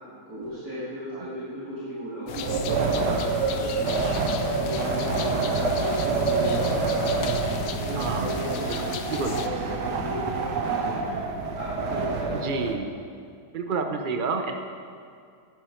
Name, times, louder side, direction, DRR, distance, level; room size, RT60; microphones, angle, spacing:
voice 1, 0.3-4.1 4.6-6.8 7.6-11.2 11.5-12.6, equal, 65° right, -10 dB, 2.7 m, -35 dB
sound 1, 2.3-9.5, left 7 dB, 75° left, 1.2 m, -35 dB
Wind, 2.4-12.7, right 4 dB, 80° right, 1.6 m, -27 dB
voice 2, 8.0-8.4 8.7-8.8 9.1-9.4 12.4-12.9 13.5-14.6, right 4 dB, 40° right, 5 dB, 0.8 m, -29 dB
11.0 x 10.5 x 4.5 m, 2.3 s
omnidirectional pair, 1.8 m